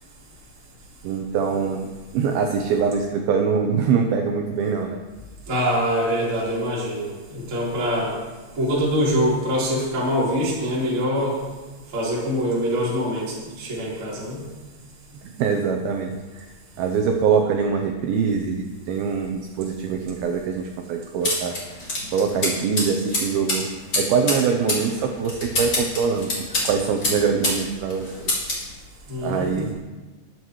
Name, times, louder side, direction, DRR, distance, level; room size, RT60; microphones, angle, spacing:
voice 1, 1.0-5.0 15.2-16.5 16.8-21.6 22.1-23.7 24.0-26.3 26.6-28.1 29.2-29.7, right 6 dB, 80° right, 3 dB, 2.2 m, -23 dB
voice 2, 5.5-8.1 8.5-11.4 11.9-14.4 29.1-29.5, equal, 30° right, -8 dB, 4.4 m, -24 dB
sound 1, 21.2-27.6 27.9-28.7, left 1 dB, 25° left, 3.6 m, -26 dB
21.0 x 9.5 x 3.2 m, 1.3 s
omnidirectional pair, 5.3 m